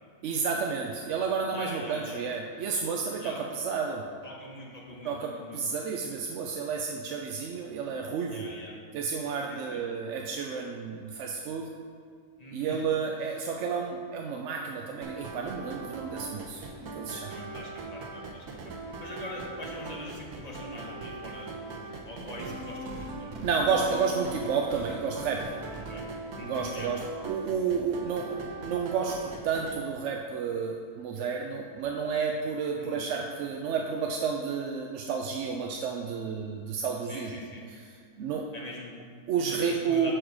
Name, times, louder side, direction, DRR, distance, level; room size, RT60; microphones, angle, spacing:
voice 1, 0.2-4.1 5.0-8.5 8.9-11.7 12.5-16.6 16.9-17.4 23.4-25.5 26.4-37.3 37.7-37.8 38.2-38.4 39.3-40.1, right 5 dB, 65° right, 2 dB, 0.7 m, -31 dB
voice 2, 1.5-2.2 3.2-3.4 4.2-5.6 8.3-8.8 9.5-9.8 12.4-12.8 17.3-23.4 25.9-26.0 26.3-26.9 32.8-33.0 37.1-37.6 38.5-40.1, left 1 dB, 30° left, -3 dB, 1.2 m, -43 dB
sound 1, 15.0-29.8, right 3 dB, 85° right, 1.3 m, -40 dB
6.3 x 6.2 x 4.7 m, 2.1 s
omnidirectional pair, 1.6 m